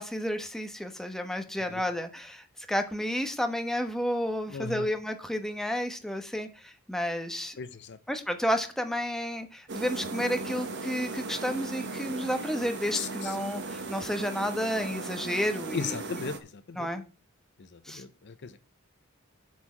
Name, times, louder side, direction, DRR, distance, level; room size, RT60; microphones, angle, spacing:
voice 1, 0.0-7.6 8.1-16.2 16.8-17.0 17.8-18.0, equal, ahead, 1.1 m, -31 dB
voice 2, 4.5-4.9 7.6-8.0 12.9-13.4 15.7-16.9 17.6-18.6, left 6 dB, 55° left, 0.6 m, -37 dB
sound 1, 9.7-16.4, right 3 dB, 55° right, 1.3 m, -37 dB
8.3 x 4.5 x 7.2 m
head